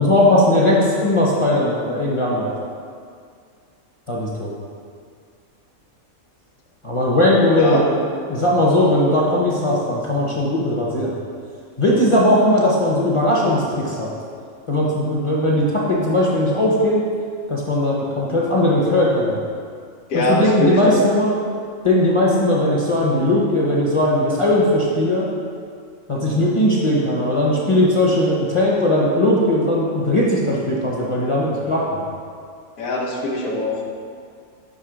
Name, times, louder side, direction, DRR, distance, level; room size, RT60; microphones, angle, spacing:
voice 1, 0.0-2.5 4.1-4.5 6.8-8.0 8.3-11.1 11.8-14.1 14.7-17.0 17.5-19.4 20.1-21.3 21.8-25.3 26.1-32.0, left 1 dB, 35° left, -5 dB, 0.5 m, -18 dB
voice 2, 20.1-20.9 32.8-33.8, left 1 dB, 75° left, -1 dB, 1.2 m, -22 dB
6.6 x 3.0 x 5.0 m, 2.2 s
omnidirectional pair, 1.5 m